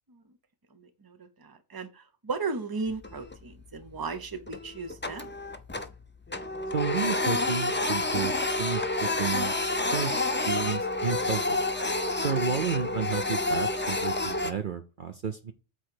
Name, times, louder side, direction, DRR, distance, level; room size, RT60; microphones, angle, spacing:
voice 1, 0.7-5.3 12.3-12.4, right 4 dB, 20° right, 0.8 m, -36 dB
Printer, 2.9-3.5 3.9-4.0 4.5-6.0 6.3-14.5, left 2 dB, 15° left, 0.4 m, -29 dB
voice 2, 6.7-9.5 9.9-11.6 12.2-15.5, right 7 dB, 50° right, 0.8 m, -32 dB
8.3 x 3.2 x 4.7 m
omnidirectional pair, 1.2 m